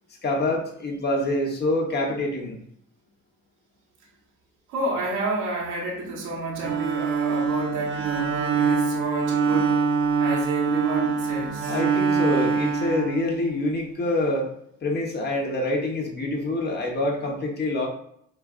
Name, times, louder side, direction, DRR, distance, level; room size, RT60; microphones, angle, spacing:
voice 1, 0.2-2.6 11.7-14.5 14.8-17.9, left 2 dB, 35° left, -1 dB, 1.2 m, -26 dB
voice 2, 4.7-9.8 10.2-11.8, right 3 dB, 90° right, -2 dB, 1.4 m, -30 dB
Bowed string instrument, 6.6-13.8, right 5 dB, 40° right, 0.9 m, -24 dB
6.7 x 2.5 x 2.5 m, 0.70 s
cardioid pair, 90°, 30 cm